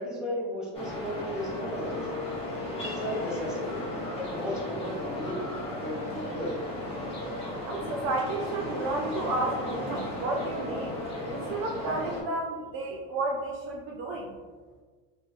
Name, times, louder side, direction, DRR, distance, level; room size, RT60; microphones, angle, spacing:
voice 1, 0.0-2.2 2.8-3.8 4.1-5.5 5.8-6.6, equal, ahead, -5 dB, 0.7 m, -35 dB
sound 1, 0.7-12.2, left 1 dB, 20° left, 1.0 m, -35 dB
voice 2, 7.7-10.9 11.3-14.4, right 2 dB, 45° right, 0 dB, 0.4 m, -32 dB
3.6 x 2.6 x 2.5 m, 1.4 s
supercardioid pair, 125°, 33 cm